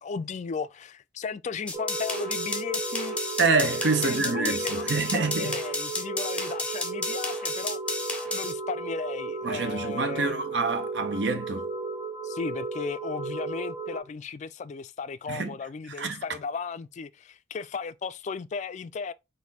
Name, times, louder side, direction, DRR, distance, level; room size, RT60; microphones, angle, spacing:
voice 1, 0.0-3.2 4.0-7.8 8.3-10.4 12.2-19.1, left 5 dB, 40° left, 0.3 m, -35 dB
sound 1, 1.7-8.5, left 2 dB, 5° left, 0.7 m, -32 dB
sound 2, 1.7-14.0, right 3 dB, 25° right, 1.5 m, -34 dB
voice 2, 3.4-5.5 9.4-11.7 15.3-15.5 16.0-16.2, right 4 dB, 70° right, 0.8 m, -27 dB
4.2 x 2.6 x 4.0 m
head